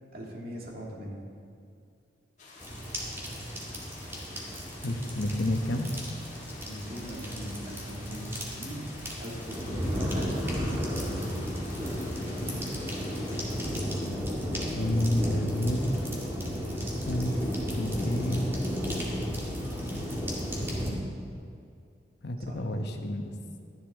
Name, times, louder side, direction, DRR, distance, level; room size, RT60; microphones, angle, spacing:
voice 1, 0.1-1.3 6.7-11.3 22.5-22.6, equal, 55° right, -2 dB, 2.1 m, -40 dB
sound 1, 2.4-13.6, left 3 dB, 40° left, 2.0 m, -49 dB
sound 2, 2.6-20.9, equal, 15° right, 2.0 m, -33 dB
voice 2, 4.8-5.9 14.7-15.8 17.0-18.6 19.7-20.1 20.8-21.1 22.2-23.4, left 1 dB, 65° left, 4 dB, 1.0 m, -30 dB
13.5 x 11.0 x 3.6 m, 2.4 s
head